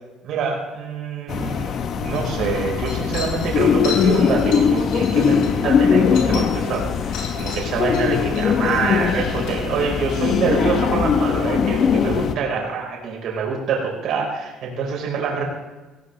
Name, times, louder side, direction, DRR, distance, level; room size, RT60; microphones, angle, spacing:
voice 1, 0.2-15.4, right 5 dB, 55° right, -1 dB, 4.5 m, -26 dB
sound 1, 1.3-12.3, left 6 dB, 45° left, 0.9 m, -20 dB
sound 2, 2.1-6.8 7.1-10.1, left 5 dB, 80° left, 5.7 m, -36 dB
18.0 x 16.5 x 3.3 m, 1.1 s
cardioid pair, 150°, 0 cm